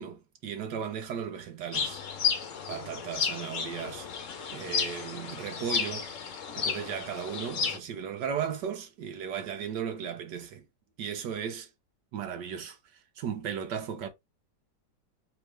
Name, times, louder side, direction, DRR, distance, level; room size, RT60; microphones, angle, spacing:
voice 1, 0.0-2.4 2.7-4.1 4.5-6.1 6.5-10.6 11.0-11.7 12.1-14.1, right 8 dB, 75° right, 1.4 m, -36 dB
sound 1, 1.7-7.8, left 6 dB, 55° left, 1.0 m, -32 dB
4.5 x 3.0 x 3.2 m
omnidirectional pair, 1.9 m